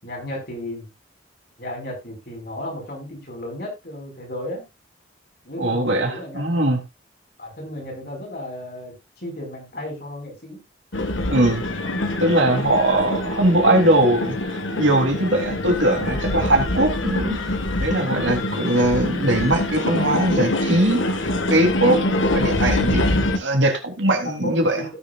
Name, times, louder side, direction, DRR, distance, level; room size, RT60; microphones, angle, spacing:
voice 1, 0.0-0.9 1.6-4.6 5.4-6.7 7.4-10.6 24.2-24.9, left 1 dB, 50° left, 0 dB, 5.4 m, -34 dB
voice 2, 5.6-6.8 11.3-11.6 12.2-14.4 14.8-17.4 17.8-21.0 21.5-23.1 23.3-24.8, right 1 dB, 75° right, 3 dB, 3.3 m, -20 dB
sound 1, 10.9-23.4, left 1 dB, 85° left, 1.8 m, -24 dB
17.5 x 7.2 x 2.5 m, 0.22 s
head